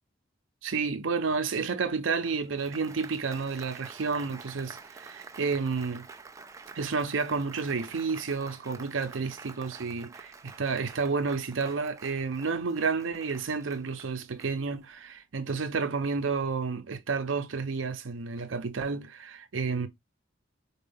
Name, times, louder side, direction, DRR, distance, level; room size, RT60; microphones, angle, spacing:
voice 1, 0.6-6.1 6.7-19.9, right 4 dB, 85° right, 0.6 m, -31 dB
Applause, 2.2-15.0, right 4 dB, 15° right, 0.3 m, -49 dB
4.3 x 2.3 x 3.4 m
head